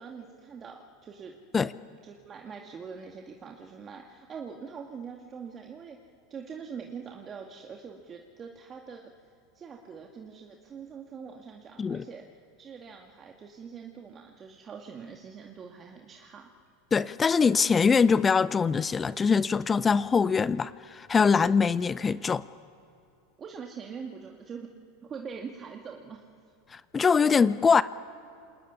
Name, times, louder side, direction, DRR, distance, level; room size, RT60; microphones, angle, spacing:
voice 1, 0.0-1.4 2.0-6.0 6.3-16.5 21.9-22.0 23.4-24.7 25.0-26.3, right 6 dB, 30° right, 1 dB, 2.1 m, -43 dB
voice 2, 16.9-22.4 26.7-27.8, left 5 dB, 20° left, 17 dB, 0.6 m, -23 dB
27.5 x 21.0 x 10.0 m, 2.8 s
hypercardioid pair, 100°, 0 cm